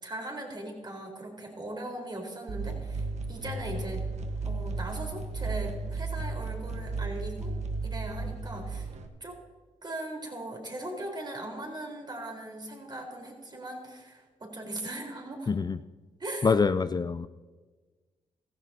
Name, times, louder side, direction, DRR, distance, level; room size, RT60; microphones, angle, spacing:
voice 1, 0.0-4.0 4.4-7.5 7.8-8.9 9.2-9.4 9.8-15.5 16.2-16.6 16.9-17.0, right 1 dB, 35° right, 1 dB, 4.3 m, -39 dB
sound 1, 2.5-9.1, right 3 dB, 65° right, 1.3 m, -34 dB
voice 2, 15.5-15.8 16.4-17.3, left 5 dB, 35° left, 12 dB, 0.4 m, -25 dB
16.5 x 14.5 x 2.8 m, 1.3 s
supercardioid pair, 45°, 13 cm